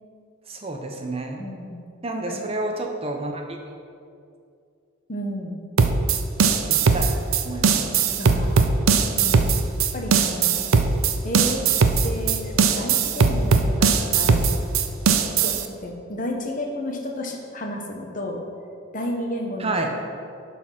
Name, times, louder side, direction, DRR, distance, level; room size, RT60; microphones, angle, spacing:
voice 1, 0.5-1.4 2.0-3.8 6.7-7.0 7.4-7.9 19.6-19.9, right 2 dB, 25° right, 3 dB, 0.6 m, -29 dB
voice 2, 1.4-1.8 2.3-2.4 5.1-5.6 8.2-8.6 9.2-9.6 9.9-10.7 11.2-11.6 12.0-14.5 15.4-18.4 18.9-20.0, left 1 dB, 40° left, 1 dB, 1.0 m, -31 dB
sound 1, 5.8-15.7, right 5 dB, 75° right, 0.5 m, -19 dB
10.5 x 4.3 x 5.8 m, 2.4 s
head